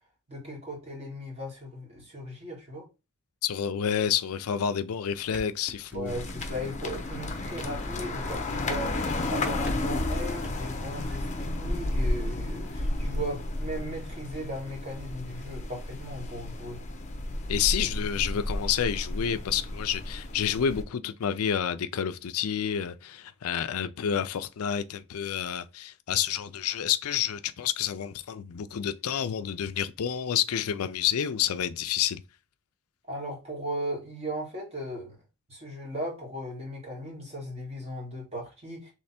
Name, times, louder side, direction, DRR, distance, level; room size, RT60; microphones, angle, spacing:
voice 1, 0.3-2.9 5.9-16.8 33.1-35.2 35.5-38.9, equal, 30° right, 1.8 m, -37 dB
voice 2, 3.4-6.2 17.5-32.2, left 9 dB, 90° left, 0.4 m, -29 dB
sound 1, 5.1-10.6, equal, 5° right, 0.9 m, -44 dB
sound 2, 6.1-20.8, left 1 dB, 35° left, 0.6 m, -32 dB
3.3 x 3.2 x 4.2 m
head